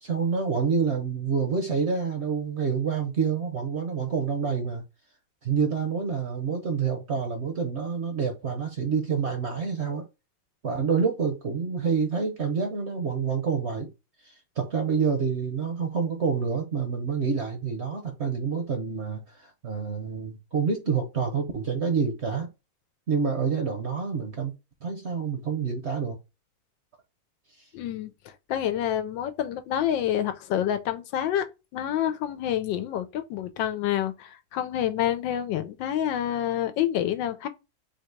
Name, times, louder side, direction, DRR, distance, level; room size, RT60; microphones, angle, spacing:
voice 1, 0.0-4.8 5.4-10.0 10.6-13.9 14.2-22.5 23.1-24.5 24.8-26.2, right 5 dB, 50° right, 0.8 m, -27 dB
voice 2, 27.7-28.1 28.5-31.4 31.7-37.5, left 11 dB, 85° left, 1.4 m, -28 dB
4.0 x 2.9 x 4.4 m
omnidirectional pair, 2.0 m